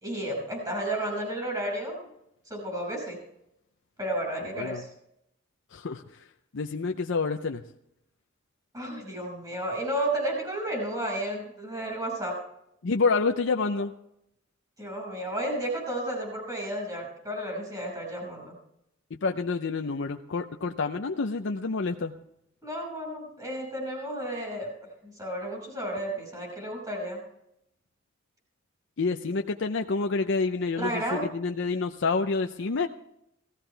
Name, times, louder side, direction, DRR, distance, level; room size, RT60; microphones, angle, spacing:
voice 1, 0.0-2.0 2.5-3.2 4.0-4.9 8.7-12.4 14.8-18.5 22.6-24.7 25.0-27.2 30.8-31.3, right 1 dB, 20° right, 0 dB, 5.9 m, -32 dB
voice 2, 4.5-4.8 5.7-6.0 6.5-7.6 12.8-13.9 19.2-22.1 29.0-32.9, left 4 dB, 65° left, 5 dB, 0.6 m, -28 dB
17.0 x 15.0 x 3.4 m, 0.79 s
head